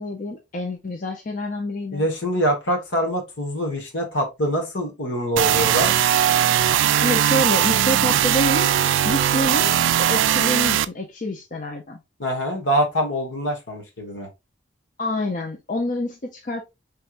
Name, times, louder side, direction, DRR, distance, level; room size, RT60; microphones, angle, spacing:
voice 1, 0.0-2.1 7.0-8.7 9.0-9.7 10.0-12.0 15.0-16.6, left 1 dB, 40° left, 0.5 m, -27 dB
voice 2, 1.9-5.9 12.2-14.3, equal, 75° left, 1.5 m, -24 dB
sound 1, 5.4-10.8, right 10 dB, 80° right, 0.3 m, -19 dB
4.5 x 3.4 x 2.5 m
head